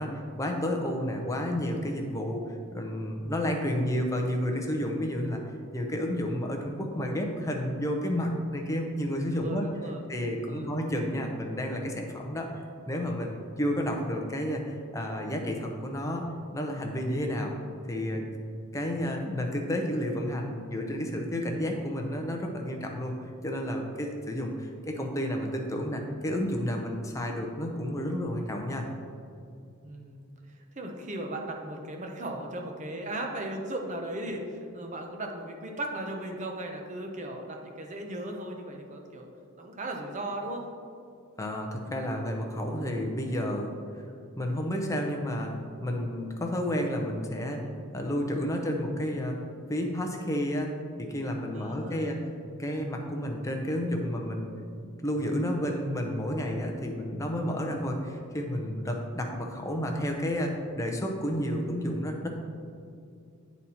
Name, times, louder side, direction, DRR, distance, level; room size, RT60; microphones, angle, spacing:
voice 1, 0.0-5.4 5.7-9.7 10.1-12.5 12.9-16.3 16.5-17.5 17.9-18.3 18.7-28.9 41.4-43.7 44.4-45.5 45.8-49.4 49.7-52.2 52.6-54.5 55.0-62.3, equal, 15° left, 2 dB, 0.6 m, -31 dB
voice 2, 9.3-10.0 10.4-10.7 29.8-39.3 39.6-40.6 51.5-52.2, right 1 dB, 35° right, 2 dB, 0.7 m, -37 dB
8.8 x 4.1 x 4.2 m, 2.4 s
head